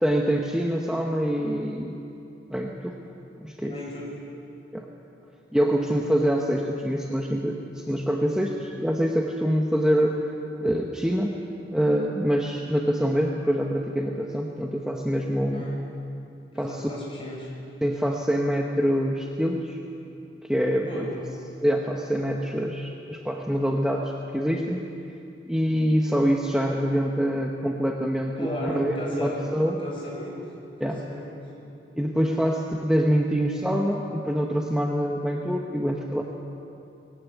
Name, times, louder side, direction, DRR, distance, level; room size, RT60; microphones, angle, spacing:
voice 1, 0.0-2.0 2.5-2.9 3.4-3.8 4.7-4.9 5.5-10.2 10.6-11.4 11.7-15.8 16.6-16.9 17.8-19.8 20.5-21.1 21.6-24.8 25.5-29.8 30.8-31.0 31.9-36.2, equal, 5° right, 0 dB, 0.9 m, -25 dB
voice 2, 3.6-4.2 5.5-5.8 15.5-15.8 16.5-17.5 20.9-21.2 28.4-29.4 29.8-30.4 30.8-31.4, left 1 dB, 30° left, -3 dB, 5.6 m, -35 dB
19.0 x 17.0 x 8.2 m, 2.7 s
head